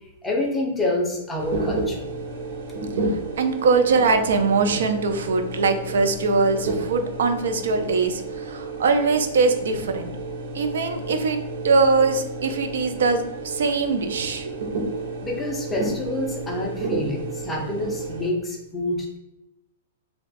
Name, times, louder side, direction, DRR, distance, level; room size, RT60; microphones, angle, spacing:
voice 1, 0.2-2.1 15.2-19.2, left 1 dB, 5° left, 0 dB, 0.4 m, -27 dB
sound 1, 1.4-18.3, right 2 dB, 50° right, 0.8 m, -31 dB
voice 2, 3.0-10.1 10.5-11.4 11.6-14.5, right 4 dB, 70° right, 7 dB, 0.4 m, -22 dB
2.5 x 2.3 x 3.9 m, 0.93 s
hypercardioid pair, 175°, 0 cm